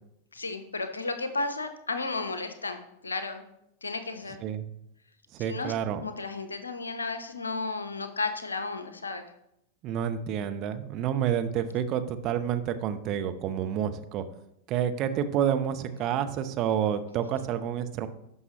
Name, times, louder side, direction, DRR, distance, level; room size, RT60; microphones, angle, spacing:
voice 1, 0.3-3.4 3.8-4.4 5.5-5.7 6.0-9.3 16.0-16.2, left 3 dB, 75° left, 9 dB, 0.8 m, -33 dB
voice 2, 5.3-6.0 9.8-14.2 14.7-18.1, right 9 dB, 35° right, 9 dB, 0.6 m, -29 dB
12.0 x 5.5 x 3.0 m, 0.79 s
figure-of-eight pair, 90°, 0 cm